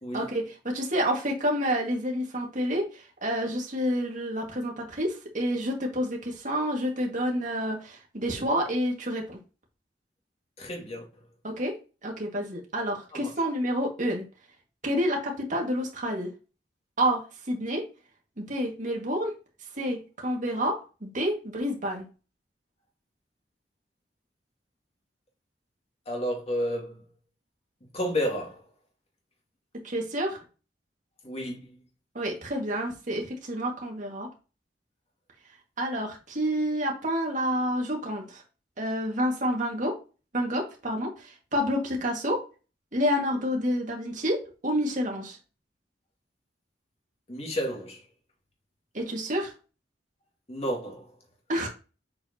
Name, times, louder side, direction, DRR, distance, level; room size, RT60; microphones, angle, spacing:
voice 1, 0.1-9.4 11.4-11.7 12.0-14.2 14.8-16.3 17.0-17.9 18.4-19.3 19.8-22.0 29.8-30.4 32.2-34.3 35.8-38.4 38.8-40.0 40.3-42.5 42.9-45.4 48.9-49.5 51.5-51.7, equal, 45° right, 1.9 m, -29 dB
voice 2, 10.6-11.1 13.1-13.3 26.1-27.0 27.9-28.6 31.2-31.7 47.3-48.0 50.5-51.1, equal, 35° left, 2.3 m, -31 dB
7.7 x 4.5 x 2.8 m
head